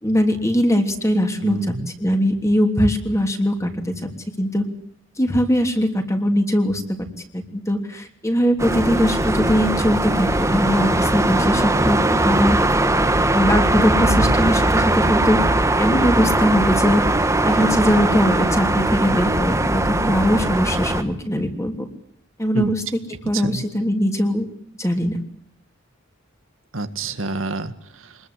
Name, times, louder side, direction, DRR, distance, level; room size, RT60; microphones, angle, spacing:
voice 1, 0.0-1.7 2.0-3.9 4.4-4.6 5.2-6.8 7.3-12.6 13.3-15.4 15.8-17.0 17.4-21.9 22.4-22.8 23.2-24.5 24.8-25.2, equal, 15° left, 5 dB, 3.1 m, -20 dB
voice 2, 1.4-1.9 14.1-14.3 22.5-22.7 23.3-23.6 26.7-28.2, right 2 dB, 80° right, 9 dB, 1.8 m, -27 dB
sound 1, 8.6-21.0, right 1 dB, 15° right, 1.4 m, -20 dB
26.0 x 21.0 x 8.3 m, 0.65 s
head